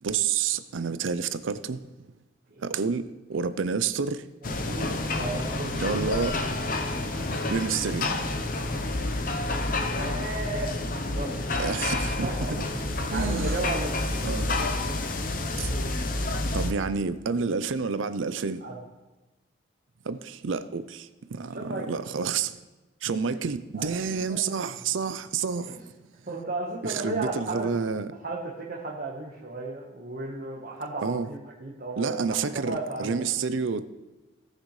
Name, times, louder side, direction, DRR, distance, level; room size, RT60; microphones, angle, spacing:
voice 1, 0.0-1.8 2.6-4.3 5.8-6.3 7.5-8.1 11.6-12.3 13.1-13.6 14.2-14.5 15.6-15.7 16.5-18.6 20.0-22.6 23.0-25.8 26.8-28.1 31.0-31.3 32.0-33.8, right 5 dB, 75° right, 0.5 m, -29 dB
sound 1, 4.4-16.7, left 2 dB, 45° left, 0.7 m, -29 dB
voice 2, 4.6-6.0 9.9-10.7 11.1-11.3 12.0-12.6 12.9-15.0 18.6-18.8 21.5-21.8 23.7-24.4 25.7-25.8 26.3-27.7 28.2-33.3, right 2 dB, 45° right, 1.2 m, -35 dB
18.0 x 6.6 x 3.2 m
head